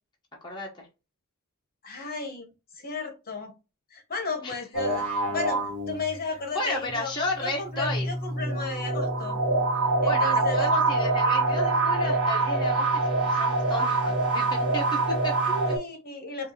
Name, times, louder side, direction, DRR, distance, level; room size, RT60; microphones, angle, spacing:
voice 1, 0.4-0.9 4.4-4.6 6.5-8.1 10.0-15.3, left 2 dB, 20° left, -3 dB, 0.9 m, -33 dB
voice 2, 1.8-2.5 2.7-3.5 3.9-7.1 7.4-9.4 10.0-10.6 15.4-16.5, left 3 dB, 45° left, 4 dB, 1.1 m, -34 dB
sound 1, 4.7-6.4 7.7-15.8, right 3 dB, 75° right, 1.2 m, -25 dB
4.5 x 2.5 x 2.7 m, 0.28 s
head